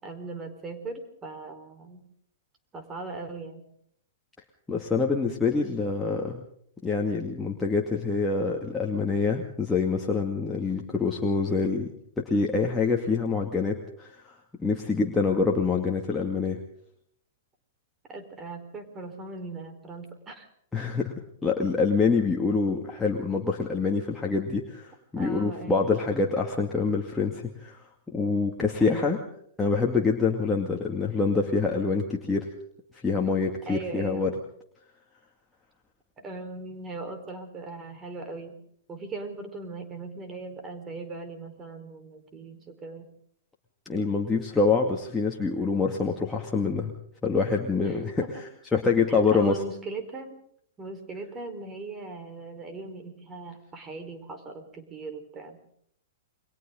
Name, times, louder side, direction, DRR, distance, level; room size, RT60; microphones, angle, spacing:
voice 1, 0.0-2.0 2.7-3.6 18.1-20.5 25.2-26.0 28.8-29.2 33.6-34.4 36.2-38.5 38.9-43.1 47.8-48.4 49.1-50.4 50.8-55.6, right 3 dB, 20° right, 6 dB, 4.5 m, -39 dB
voice 2, 4.7-6.4 6.8-11.9 12.2-14.3 14.6-16.6 20.7-21.1 21.4-27.8 28.1-29.2 29.6-32.5 33.0-34.3 43.9-46.9 47.2-48.2 48.7-49.6, left 4 dB, 10° left, -1 dB, 2.3 m, -26 dB
29.5 x 23.0 x 3.9 m, 0.67 s
figure-of-eight pair, 105°, 0 cm